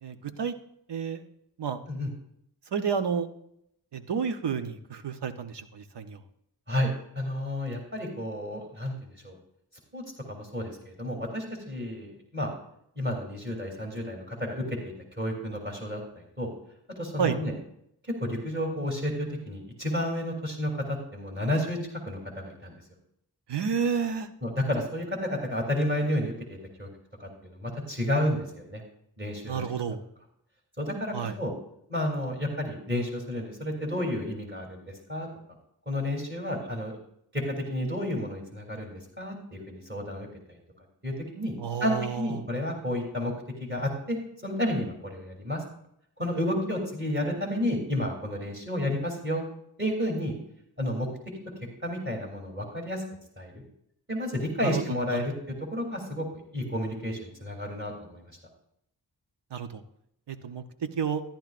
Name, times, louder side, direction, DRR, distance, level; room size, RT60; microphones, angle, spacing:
voice 1, 0.0-0.5 0.9-1.2 1.6-1.8 2.7-3.3 3.9-6.2 17.2-17.4 23.5-24.3 29.5-30.0 31.1-31.3 41.6-42.4 54.6-55.3 59.5-59.8 60.3-61.2, right 6 dB, 80° right, 8 dB, 0.9 m, -30 dB
voice 2, 6.7-9.4 9.9-10.0 10.3-12.5 13.0-16.5 16.9-17.5 18.2-21.8 22.1-22.7 24.4-26.9 27.2-28.8 29.2-29.7 30.8-31.5 31.9-35.3 35.9-37.0 37.3-40.6 41.0-41.5 41.8-43.3 43.6-44.2 44.4-45.6 46.2-49.4 49.8-50.3 50.8-51.1 51.8-53.0 53.4-53.6 54.1-56.3 56.5-58.3, left 1 dB, 25° right, 0 dB, 3.0 m, -31 dB
13.5 x 10.5 x 2.5 m, 0.73 s
cardioid pair, 50°, 41 cm